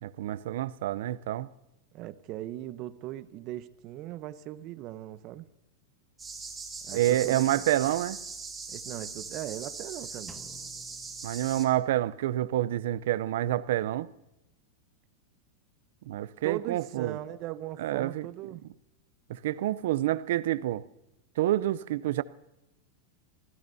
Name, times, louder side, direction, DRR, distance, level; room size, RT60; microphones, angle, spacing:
voice 1, 0.0-1.5 6.9-8.2 11.2-14.1 16.1-17.2 17.8-18.3 19.3-20.8 21.4-22.2, right 14 dB, 70° right, 0.6 m, -28 dB
voice 2, 1.9-5.5 6.8-7.6 8.7-10.5 16.4-18.6, right 14 dB, 45° right, 0.9 m, -39 dB
sound 1, 6.2-11.6, right 4 dB, 15° right, 2.9 m, -40 dB
Drum, 10.3-12.2, left 3 dB, 5° left, 1.2 m, -54 dB
25.0 x 16.0 x 2.8 m
hypercardioid pair, 115°, 0 cm